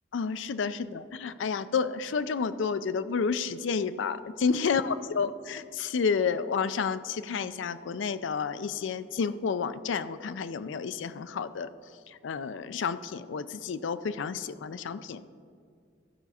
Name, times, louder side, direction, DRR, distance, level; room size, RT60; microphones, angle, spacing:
voice 1, 0.1-11.7 12.1-15.3, left 5 dB, 85° left, 13 dB, 0.4 m, -30 dB
15.0 x 5.9 x 4.2 m, 2.1 s
head